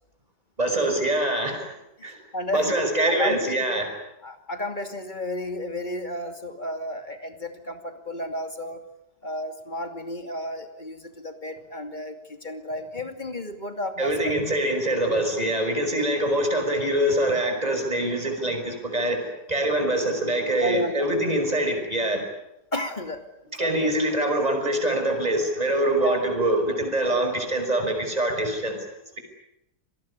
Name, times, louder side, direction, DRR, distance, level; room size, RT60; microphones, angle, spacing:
voice 1, 0.6-1.7 2.0-2.2 2.5-3.9 14.0-22.2 23.5-28.8, right 1 dB, 20° right, 4 dB, 5.8 m, -24 dB
voice 2, 2.0-2.8 3.1-3.8 4.2-8.8 9.2-14.3 20.6-21.1 22.7-23.2 23.6-23.9 25.9-26.2 27.1-27.2, left 1 dB, 25° left, 7 dB, 2.6 m, -33 dB
26.0 x 19.5 x 9.8 m, 0.85 s
omnidirectional pair, 1.8 m